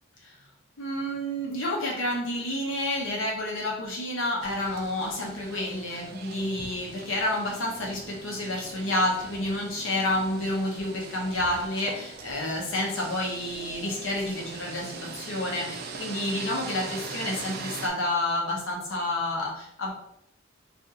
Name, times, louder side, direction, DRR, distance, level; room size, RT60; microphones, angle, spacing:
voice 1, 0.8-19.9, left 1 dB, 80° left, -2 dB, 0.9 m, -29 dB
sound 1, 4.4-17.9, right 4 dB, 50° right, 0.4 m, -41 dB
2.8 x 2.6 x 3.7 m, 0.82 s
head